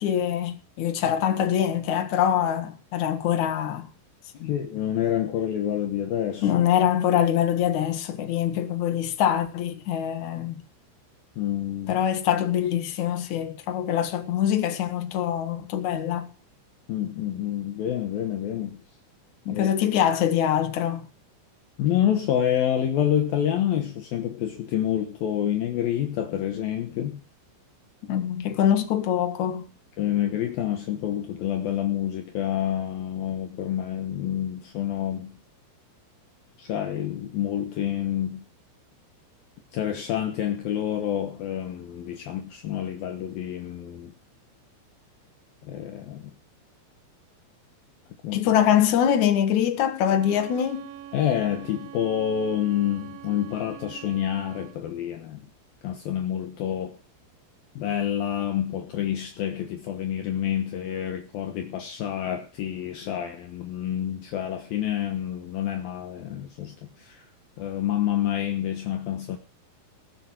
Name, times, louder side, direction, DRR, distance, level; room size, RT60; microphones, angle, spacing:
voice 1, 0.0-3.9 4.4-4.5 6.4-10.6 11.9-16.3 19.5-21.1 28.1-29.7 48.3-50.9, left 10 dB, 60° left, 2.1 m, -24 dB
voice 2, 4.5-6.6 11.4-11.9 16.9-18.8 19.5-19.7 21.8-27.2 30.0-35.4 36.6-38.5 39.7-44.1 45.6-46.3 48.2-48.4 51.1-55.4 55.8-57.0 57.8-67.2 67.6-69.4, left 10 dB, 80° left, 2.1 m, -28 dB
Bowed string instrument, 50.0-54.8, right 10 dB, 90° right, 4.3 m, -44 dB
19.5 x 6.7 x 6.1 m
omnidirectional pair, 5.9 m